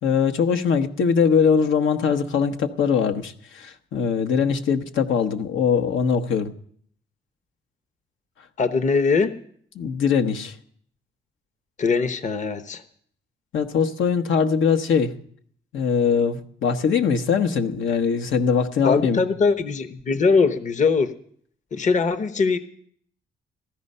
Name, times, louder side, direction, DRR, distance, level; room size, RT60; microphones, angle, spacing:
voice 1, 0.0-6.5 9.8-10.6 13.5-15.1 15.7-19.2, left 6 dB, 75° left, 6 dB, 1.2 m, -21 dB
voice 2, 8.6-9.4 11.8-12.8 18.8-21.1 21.7-22.6, left 4 dB, 40° left, 11 dB, 1.0 m, -21 dB
15.5 x 13.0 x 5.5 m, 0.62 s
cardioid pair, 90°, 20 cm